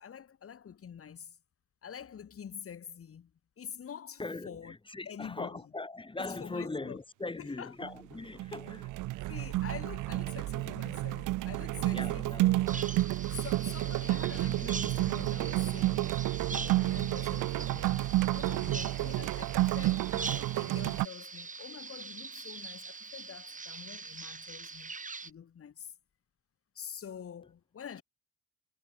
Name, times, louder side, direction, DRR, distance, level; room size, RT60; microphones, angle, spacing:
voice 1, 0.0-1.4 1.8-3.3 3.6-4.8 5.1-5.6 6.2-7.0 7.4-7.9 9.3-12.8 13.3-25.0 25.2-25.9 26.8-28.0, left 8 dB, 50° left, 2.1 m, -46 dB
voice 2, 4.2-8.9 11.9-12.8, left 2 dB, 15° left, 2.1 m, -40 dB
sound 1, 7.8-8.1 8.4-21.1, right 17 dB, 90° right, 1.0 m, -30 dB
Bird vocalization bird call bird song, 12.7-25.3, right 4 dB, 25° right, 3.2 m, -43 dB
cardioid pair, 90°, 30 cm